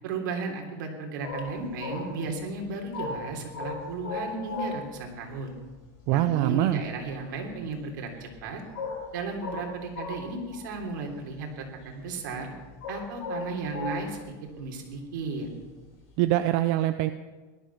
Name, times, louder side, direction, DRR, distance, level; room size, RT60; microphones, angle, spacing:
voice 1, 0.0-5.5 6.1-8.6 9.1-12.5 12.9-14.2 14.6-15.5, right 3 dB, 60° right, 2 dB, 3.3 m, -34 dB
sound 1, 1.2-5.0 5.3-5.4 5.6-6.6 6.9-7.7 8.2-8.4 8.7-10.7 11.1-11.9 12.2-14.2 15.6-16.2, left 3 dB, 50° left, 5.8 m, -36 dB
voice 2, 6.1-6.8 16.2-17.1, right 14 dB, 35° right, 10 dB, 0.4 m, -23 dB
18.0 x 12.0 x 5.9 m, 1.3 s
supercardioid pair, 180°, 11 cm